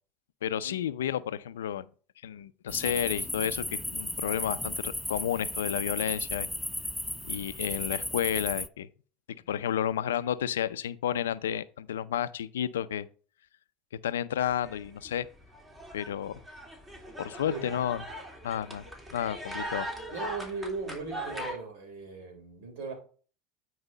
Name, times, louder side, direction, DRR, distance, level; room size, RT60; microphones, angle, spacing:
voice 1, 0.4-1.9 2.2-6.5 7.2-8.9 9.5-13.1 14.0-15.3 15.9-16.4 17.2-18.0 18.4-19.9, left 10 dB, 85° left, 0.5 m, -31 dB
sound 1, 2.7-8.7, left 1 dB, 5° left, 0.4 m, -35 dB
sound 2, 14.4-15.1 15.4-21.5, equal, 20° right, 3.2 m, -40 dB
voice 2, 20.1-22.9, right 4 dB, 70° right, 3.4 m, -38 dB
9.7 x 4.7 x 3.9 m
hypercardioid pair, 80°, 0 cm